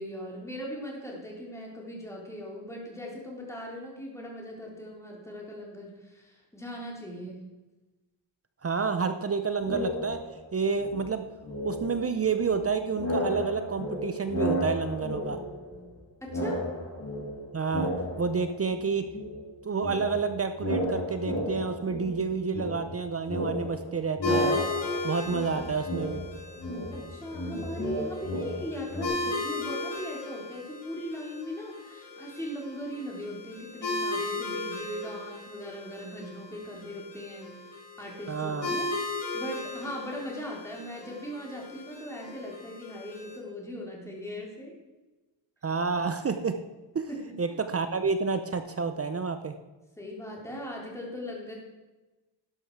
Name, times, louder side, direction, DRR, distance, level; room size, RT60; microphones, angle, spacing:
voice 1, 0.0-7.5 16.2-16.6 26.9-44.8 47.1-47.4 50.0-51.5, equal, 5° left, -3 dB, 3.5 m, -39 dB
voice 2, 8.6-10.2 10.5-11.3 11.6-15.4 17.5-17.9 18.2-19.1 19.6-24.6 25.0-26.2 38.3-38.7 45.6-46.6 46.9-47.1 47.4-49.6, right 5 dB, 30° right, 9 dB, 0.7 m, -29 dB
sound 1, 9.6-10.5 10.8-12.7 12.9-16.0 16.3-18.8 19.1-29.0, left 1 dB, 35° left, 3.0 m, -34 dB
sound 2, 24.2-43.4, left 2 dB, 65° left, 4.7 m, -36 dB
12.5 x 11.0 x 4.7 m, 1.1 s
wide cardioid pair, 130°, 45 cm